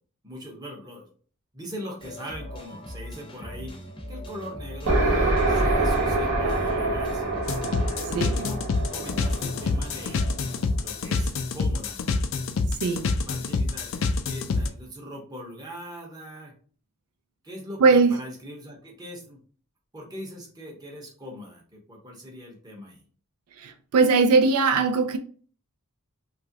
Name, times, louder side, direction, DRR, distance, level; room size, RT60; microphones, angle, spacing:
voice 1, 0.2-1.1 1.5-3.7 4.1-7.3 8.1-8.6 8.9-10.2 10.8-12.0 13.2-16.5 17.4-19.4 19.9-23.0, equal, 15° right, 0.7 m, -41 dB
sound 1, 2.0-10.6, equal, 25° left, 0.7 m, -40 dB
sound 2, 4.9-10.5, right 2 dB, 65° right, 0.9 m, -25 dB
sound 3, 7.5-14.7, left 3 dB, 60° left, 0.3 m, -27 dB
voice 2, 12.8-13.1 17.8-18.1 23.6-25.2, right 4 dB, 80° right, 0.4 m, -20 dB
2.9 x 2.4 x 2.7 m
head